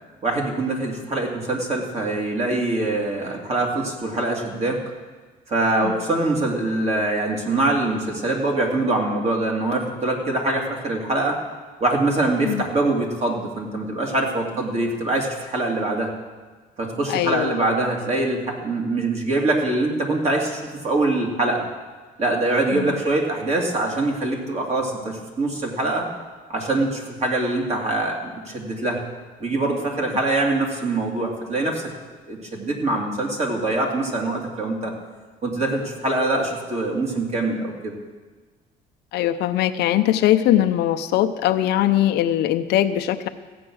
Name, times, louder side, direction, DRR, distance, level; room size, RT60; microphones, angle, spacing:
voice 1, 0.2-4.8 5.5-11.4 11.8-16.1 16.8-21.6 22.2-26.1 26.5-29.0 29.4-31.8 32.3-34.9 35.4-37.9, right 2 dB, 40° right, 0 dB, 2.8 m, -24 dB
voice 2, 17.1-17.5 22.7-22.9 39.1-43.3, left 12 dB, 80° left, 8 dB, 0.7 m, -21 dB
15.0 x 8.7 x 6.3 m, 1.4 s
cardioid pair, 110°, 17 cm